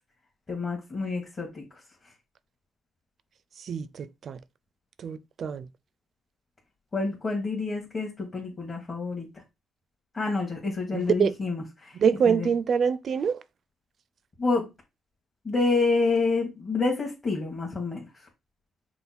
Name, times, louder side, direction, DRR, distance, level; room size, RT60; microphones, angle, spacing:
voice 1, 0.5-2.1 6.9-9.4 10.1-12.0 12.2-12.5 14.4-14.7 15.4-18.3, left 3 dB, 35° left, 1.5 m, -28 dB
voice 2, 3.6-4.4 5.0-5.7 10.9-11.3 12.0-13.4, right 7 dB, 55° right, 0.4 m, -25 dB
5.7 x 2.1 x 4.2 m
cardioid pair, 90°, 0 cm